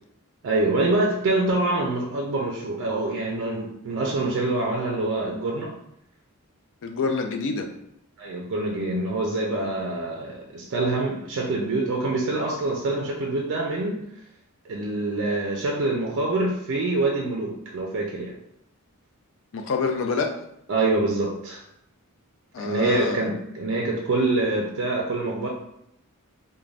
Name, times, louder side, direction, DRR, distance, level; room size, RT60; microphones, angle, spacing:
voice 1, 0.4-5.7 8.2-14.0 14.7-18.3 20.7-21.6 22.6-25.5, right 2 dB, 60° right, -1 dB, 0.4 m, -25 dB
voice 2, 6.8-7.7 19.5-20.3 22.5-23.3, left 4 dB, 60° left, 5 dB, 0.4 m, -27 dB
2.5 x 2.1 x 3.2 m, 0.78 s
head